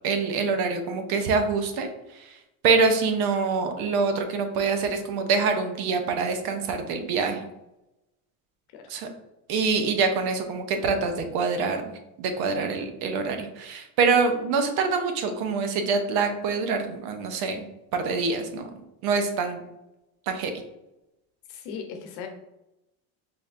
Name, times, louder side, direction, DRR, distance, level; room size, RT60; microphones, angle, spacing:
voice 1, 0.0-2.4 2.6-7.4 8.9-9.1 9.5-17.6 17.9-18.7 19.0-19.6 20.3-20.5, right 4 dB, 70° right, 6 dB, 0.7 m, -25 dB
voice 2, 21.5-22.3, left 6 dB, 75° left, 4 dB, 0.8 m, -37 dB
4.3 x 3.1 x 2.4 m, 0.91 s
cardioid pair, 110°, 40 cm